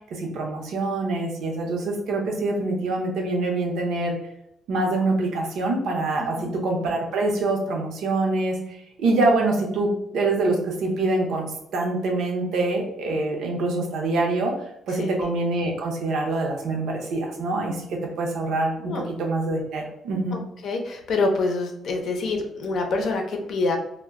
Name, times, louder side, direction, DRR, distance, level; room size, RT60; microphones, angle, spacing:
voice 1, 0.1-4.1 4.7-14.6 14.9-20.4, right 2 dB, 75° right, 1 dB, 0.6 m, -25 dB
voice 2, 6.2-6.5 15.0-15.1 18.8-19.0 20.3-23.8, left 3 dB, 65° left, 3 dB, 0.5 m, -26 dB
2.1 x 2.1 x 3.5 m, 0.78 s
cardioid pair, 90°, 0 cm